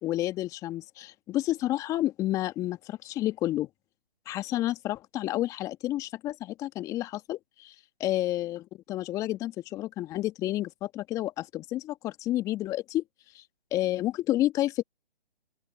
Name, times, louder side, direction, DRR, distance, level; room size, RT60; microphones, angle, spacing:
voice 1, 0.0-3.7 4.2-7.7 8.0-13.0 13.3-13.4 13.7-14.8, left 14 dB, 10° left, 1.6 m, -30 dB
open air
figure-of-eight pair, 145°, 29 cm